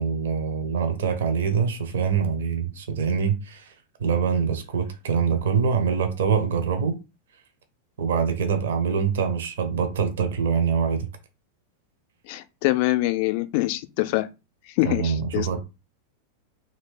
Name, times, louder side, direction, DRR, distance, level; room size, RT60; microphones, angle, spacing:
voice 1, 0.0-3.7 4.0-7.0 8.0-11.1 14.8-15.6, right 6 dB, 60° right, 0.6 m, -24 dB
voice 2, 12.3-14.3 14.7-15.6, left 18 dB, 45° left, 0.3 m, -24 dB
2.6 x 2.6 x 3.5 m
figure-of-eight pair, 90°, 0 cm